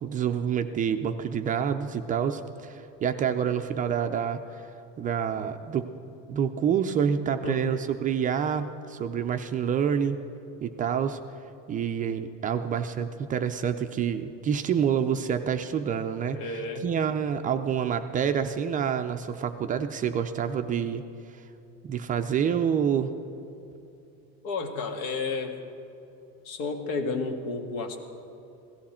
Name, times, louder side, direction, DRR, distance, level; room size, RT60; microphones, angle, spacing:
voice 1, 0.0-4.6 5.0-5.9 6.3-10.2 10.6-11.2 11.7-16.4 16.8-21.0 21.8-23.1, right 8 dB, 25° right, 7 dB, 0.4 m, -27 dB
voice 2, 16.3-16.9 24.4-25.6 26.4-28.0, left 3 dB, 80° left, 4 dB, 1.7 m, -31 dB
17.0 x 14.0 x 4.3 m, 2.9 s
cardioid pair, 150°, 33 cm